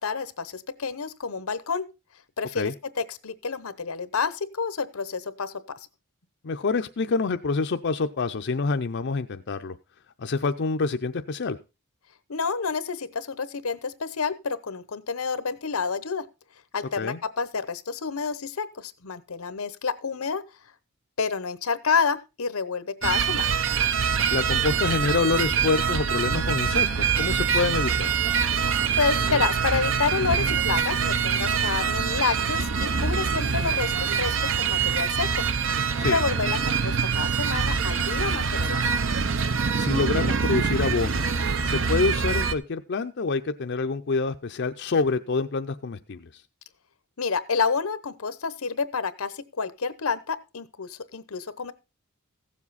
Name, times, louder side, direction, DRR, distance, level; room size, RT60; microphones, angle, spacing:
voice 1, 0.0-1.8 2.4-2.7 3.0-5.5 12.3-16.3 16.7-20.4 21.2-23.5 29.0-35.4 36.1-39.1 47.2-51.7, left 5 dB, 90° left, 14 dB, 0.9 m, -29 dB
voice 2, 6.4-9.8 10.2-11.6 17.0-17.2 24.3-28.1 36.0-36.2 39.8-41.2 41.6-46.4, left 4 dB, 55° left, 7 dB, 0.5 m, -27 dB
sound 1, 23.0-42.5, right 6 dB, 65° right, 0.7 m, -24 dB
15.5 x 7.3 x 4.1 m, 0.28 s
head